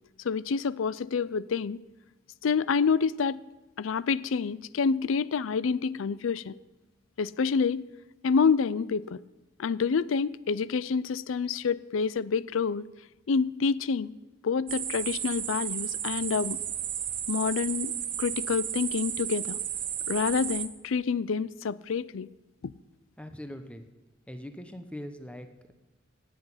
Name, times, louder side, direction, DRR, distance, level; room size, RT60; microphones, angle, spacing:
voice 1, 0.2-1.8 2.4-3.4 3.8-6.5 7.2-7.8 8.2-9.2 9.6-12.8 13.3-14.1 14.4-16.6 17.3-17.9 18.2-19.6 20.1-22.3 22.6-22.7, left 5 dB, 90° left, 0.4 m, -27 dB
sound 1, 14.7-20.7, right 10 dB, 45° right, 1.0 m, -33 dB
voice 2, 23.2-23.8 24.3-25.7, equal, 5° left, 0.9 m, -41 dB
17.0 x 8.0 x 5.7 m
head